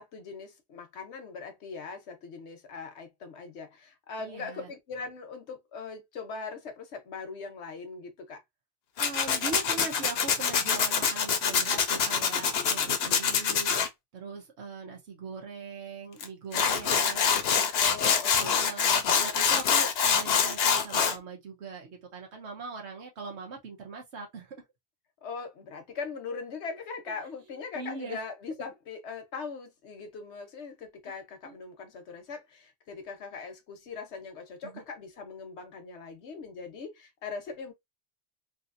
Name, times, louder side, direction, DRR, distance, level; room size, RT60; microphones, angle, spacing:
voice 1, 0.0-8.4 17.8-18.7 25.2-37.7, left 4 dB, 85° left, 1.2 m, -40 dB
voice 2, 4.2-4.7 9.0-13.8 14.1-24.6 27.7-28.2 31.4-31.5 34.6-34.8, right 4 dB, 90° right, 1.2 m, -41 dB
Tools, 9.0-13.9 16.2-16.3 16.5-21.2, left 6 dB, 70° left, 0.9 m, -25 dB
3.3 x 2.7 x 2.5 m
omnidirectional pair, 1.1 m